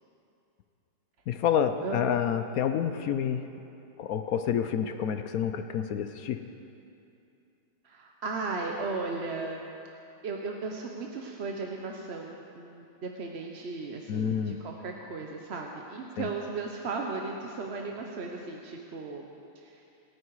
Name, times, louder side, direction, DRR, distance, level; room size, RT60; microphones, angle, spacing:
voice 1, 1.3-3.5 4.0-6.4 14.1-14.6 16.2-16.3, left 8 dB, 65° left, 8 dB, 0.9 m, -28 dB
voice 2, 7.8-9.6 10.2-19.3 19.6-19.8, right 3 dB, 45° right, 1 dB, 1.0 m, -36 dB
26.5 x 9.6 x 4.8 m, 2.8 s
omnidirectional pair, 1.9 m